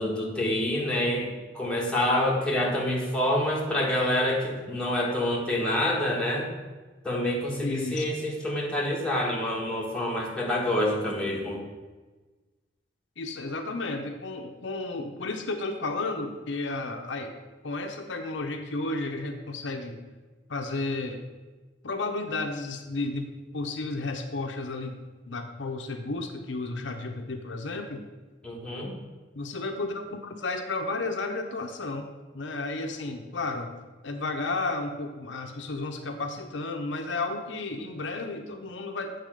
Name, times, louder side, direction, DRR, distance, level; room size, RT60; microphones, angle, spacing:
voice 1, 0.0-6.5 7.0-11.6 28.4-28.9, left 1 dB, 5° left, -4 dB, 1.4 m, -27 dB
voice 2, 7.6-8.0 13.2-17.3 17.6-20.0 20.5-21.2 21.8-25.0 25.3-28.0 29.3-32.1 32.3-33.7 34.0-39.1, left 3 dB, 70° left, 5 dB, 0.7 m, -32 dB
8.3 x 4.1 x 6.4 m, 1.3 s
head